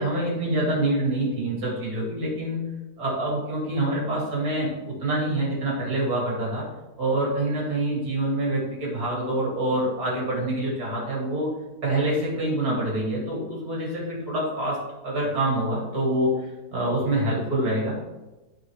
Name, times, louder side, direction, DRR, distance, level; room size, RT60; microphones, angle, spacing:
voice 1, 0.0-2.7 3.0-6.7 7.0-11.5 11.8-16.3 16.7-18.0, right 1 dB, 60° right, -4 dB, 2.8 m, -26 dB
12.5 x 4.3 x 3.1 m, 1.1 s
omnidirectional pair, 1.9 m